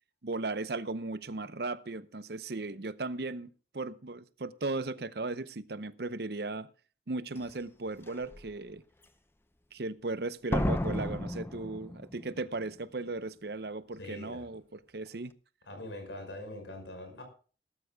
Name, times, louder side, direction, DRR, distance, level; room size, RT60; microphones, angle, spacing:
voice 1, 0.2-6.7 7.1-8.8 9.7-15.3, right 3 dB, 60° right, 0.7 m, -36 dB
Slam, 7.4-7.5 8.1-8.4 10.5-12.4 12.7-12.8, left 1 dB, 15° left, 0.6 m, -33 dB
voice 2, 14.0-14.5 15.6-17.2, left 1 dB, 85° left, 5.6 m, -43 dB
19.5 x 12.5 x 2.3 m
head